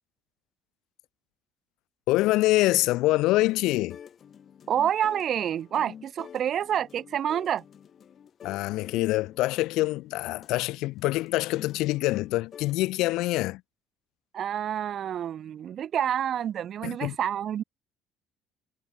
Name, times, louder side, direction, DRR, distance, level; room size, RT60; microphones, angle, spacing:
voice 1, 2.1-4.0 8.4-13.6 16.8-17.2, left 18 dB, 75° left, 0.9 m, -25 dB
sound 1, 3.0-13.3, left 8 dB, 35° left, 5.4 m, -49 dB
voice 2, 4.7-7.6 14.3-17.6, right 10 dB, 40° right, 0.7 m, -28 dB
cardioid pair, 165°, 0 cm